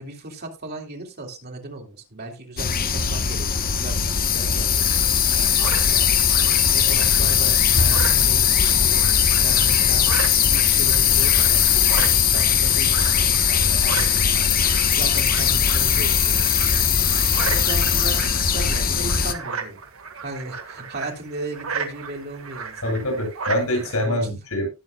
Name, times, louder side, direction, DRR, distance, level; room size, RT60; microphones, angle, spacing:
voice 1, 0.0-4.9 5.3-6.0 6.7-10.1 10.5-11.6 11.9-16.9 17.4-19.8 20.2-22.9 24.0-24.4, right 2 dB, 45° right, 1 dB, 2.8 m, -36 dB
sound 1, 2.6-19.3, left 8 dB, 45° left, 1.0 m, -19 dB
sound 2, 4.8-24.1, right 5 dB, 70° right, 1.8 m, -35 dB
voice 2, 22.8-24.7, left 1 dB, 80° left, 2 dB, 7.7 m, -24 dB
19.0 x 7.3 x 2.3 m, 0.27 s
head